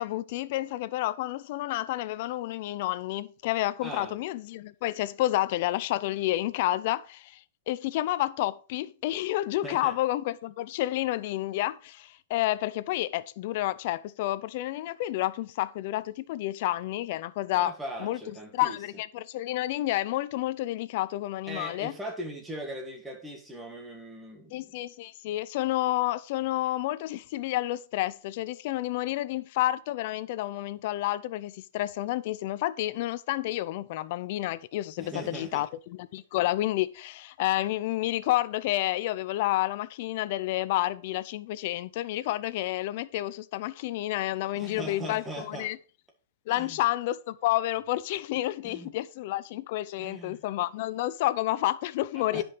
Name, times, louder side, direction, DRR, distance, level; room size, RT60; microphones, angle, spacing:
voice 1, 0.0-7.4 7.7-17.7 18.0-18.2 18.5-21.9 24.5-45.8 46.5-52.4, left 15 dB, 50° left, 0.6 m, -30 dB
voice 2, 3.8-4.2 9.6-10.0 17.5-18.8 21.5-24.6 35.0-35.7 44.5-45.7 46.5-46.8 48.6-48.9 50.0-50.4 52.1-52.4, right 1 dB, 10° right, 1.6 m, -40 dB
9.9 x 5.3 x 4.7 m
hypercardioid pair, 145°, 0 cm